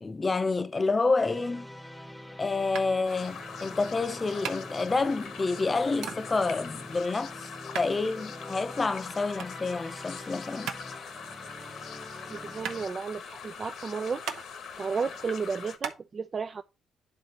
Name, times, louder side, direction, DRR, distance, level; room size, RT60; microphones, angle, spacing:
voice 1, 0.0-1.7 2.4-7.4 7.7-10.7, left 3 dB, 30° left, 0.6 m, -28 dB
sound 1, 1.2-12.9, equal, 5° left, 0.9 m, -45 dB
sound 2, 2.7-16.0, right 8 dB, 90° right, 0.8 m, -42 dB
sound 3, 3.0-15.8, left 6 dB, 75° left, 1.1 m, -42 dB
voice 2, 12.3-14.2 14.8-16.6, right 5 dB, 40° right, 0.4 m, -33 dB
11.5 x 3.9 x 2.9 m
cardioid pair, 90°, 0 cm